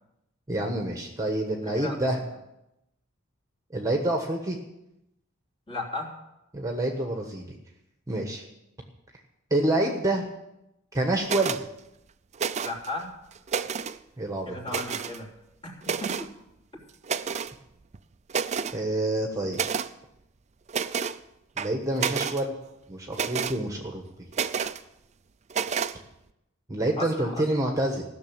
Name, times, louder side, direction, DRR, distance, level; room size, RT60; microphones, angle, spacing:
voice 1, 0.5-2.2 3.7-4.6 6.5-7.6 8.1-8.4 9.5-10.2 10.9-11.6 14.2-14.6 18.7-19.6 21.6-22.5 22.9-24.0 26.7-28.0, right 1 dB, 15° right, 2 dB, 1.3 m, -27 dB
voice 2, 1.5-2.0 5.7-6.1 12.6-13.1 14.5-15.3 15.6-16.3 27.0-27.4, left 2 dB, 25° left, -3 dB, 3.3 m, -35 dB
sound 1, 11.2-11.6 12.3-12.9 13.3-14.0 14.7-15.2 15.8-16.3 17.0-17.5 17.9-18.0 18.3-18.8 19.5-19.9 20.7-21.2 21.6-22.4 23.1-23.6 24.3-24.8 25.5-25.9, right 6 dB, 35° right, 0.5 m, -29 dB
16.0 x 6.7 x 8.9 m, 0.88 s
head